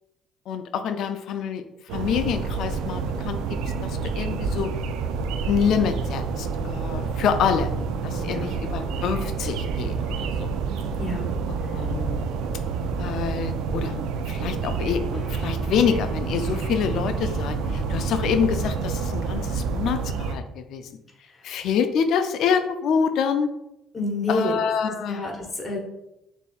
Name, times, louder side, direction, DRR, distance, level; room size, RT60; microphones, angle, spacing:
voice 1, 0.5-1.6 1.9-3.4 3.8-4.7 5.5-7.7 8.0-10.5 11.7-12.2 13.0-20.9 21.4-23.5 24.3-25.2, left 7 dB, 70° left, 9 dB, 0.3 m, -26 dB
sound 1, 1.9-20.3, right 5 dB, 80° right, 0.3 m, -28 dB
voice 2, 8.2-8.5 11.0-11.3 11.6-11.7 21.3-21.5 23.9-24.6 24.9-25.8, left 2 dB, 30° left, -2 dB, 1.2 m, -29 dB
sound 2, 15.1-19.2, right 2 dB, 5° right, 1.5 m, -38 dB
6.5 x 2.6 x 2.3 m, 0.89 s
supercardioid pair, 75°, 0 cm